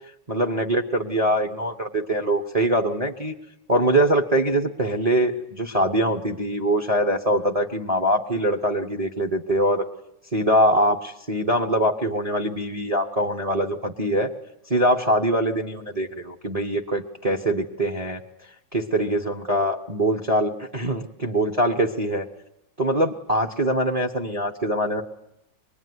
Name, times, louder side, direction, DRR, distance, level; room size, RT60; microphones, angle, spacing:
voice 1, 0.3-3.3 3.7-9.8 10.3-14.3 14.7-18.2 18.7-22.3 22.8-25.0, right 1 dB, 25° right, 3 dB, 1.0 m, -23 dB
24.5 x 21.5 x 9.7 m, 0.82 s
omnidirectional pair, 2.1 m